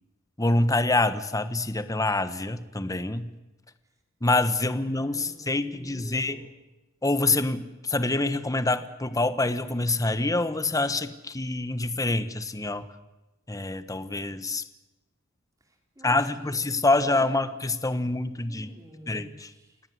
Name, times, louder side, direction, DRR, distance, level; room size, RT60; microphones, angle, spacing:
voice 1, 0.4-3.3 4.2-6.4 7.0-12.9 13.5-14.6 16.0-18.7 19.1-19.5, left 2 dB, 15° left, 12 dB, 1.2 m, -26 dB
voice 2, 4.6-6.5 15.6-16.6 16.9-17.5 17.9-18.0 18.5-19.8, equal, 15° right, 2 dB, 4.6 m, -50 dB
29.0 x 17.5 x 8.1 m, 1.0 s
head